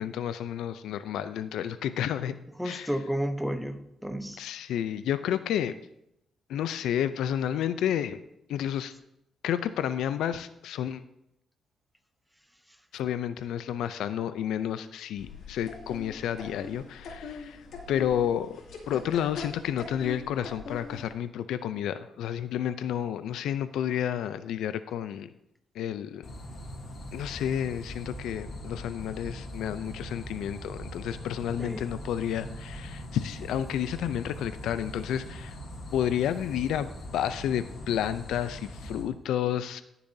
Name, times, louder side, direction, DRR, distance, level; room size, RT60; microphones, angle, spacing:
voice 1, 0.0-2.4 2.6-2.9 4.4-5.7 6.5-8.2 8.5-8.9 9.4-11.0 12.9-17.6 17.9-18.6 18.9-25.3 25.8-26.3 27.1-35.5 35.9-39.8, left 10 dB, 90° left, 12 dB, 0.4 m, -31 dB
voice 2, 2.6-4.4 31.6-32.0, equal, ahead, 8 dB, 0.8 m, -32 dB
sound 1, 15.2-21.1, left 3 dB, 70° left, 2.3 m, -42 dB
sound 2, 26.2-39.0, equal, 55° left, 2.4 m, -41 dB
17.5 x 7.0 x 2.7 m, 0.82 s
cardioid pair, 115°, 0 cm